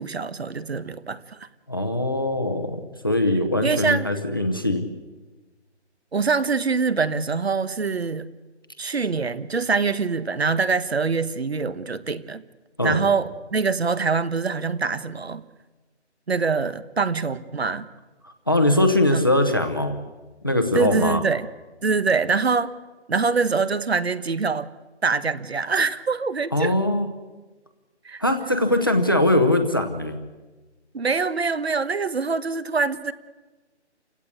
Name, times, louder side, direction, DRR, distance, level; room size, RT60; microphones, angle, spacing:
voice 1, 0.0-1.4 3.6-4.1 6.1-8.3 8.8-12.4 12.8-15.4 16.3-17.8 19.1-19.3 20.7-21.5 21.8-22.7 23.1-24.7 25.0-26.7 28.0-28.2 30.9-33.1, right 4 dB, 60° right, 15 dB, 1.3 m, -24 dB
voice 2, 1.7-4.9 12.8-13.0 18.2-20.0 20.4-21.2 26.5-27.1 28.2-30.2, left 1 dB, 20° left, 7 dB, 0.9 m, -21 dB
28.5 x 17.0 x 8.6 m, 1.3 s
hypercardioid pair, 180°, 35 cm